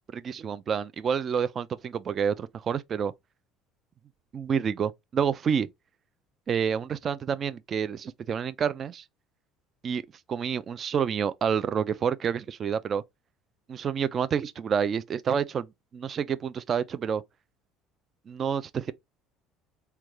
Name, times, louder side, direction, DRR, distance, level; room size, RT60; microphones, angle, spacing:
voice 1, 0.1-3.1 4.3-5.7 6.5-9.0 9.8-10.0 10.3-13.0 13.7-15.7 15.9-17.2 18.3-18.9, right 7 dB, 40° right, 0.3 m, -28 dB
3.5 x 2.2 x 3.1 m
supercardioid pair, 90°, 0 cm